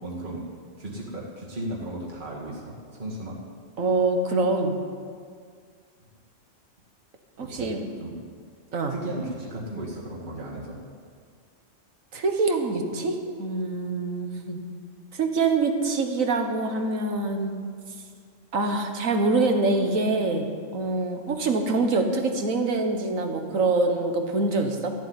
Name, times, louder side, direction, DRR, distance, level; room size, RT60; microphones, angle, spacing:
voice 1, 0.0-0.4 0.8-3.4 7.4-7.7 8.0-8.2 8.9-10.8 21.2-21.3, right 1 dB, 40° right, -4 dB, 2.3 m, -35 dB
voice 2, 3.8-4.8 7.4-7.8 8.7-8.9 12.1-14.6 15.1-17.6 18.5-24.9, right 3 dB, 90° right, 4 dB, 1.8 m, -25 dB
14.0 x 7.8 x 9.7 m, 2.1 s
omnidirectional pair, 1.4 m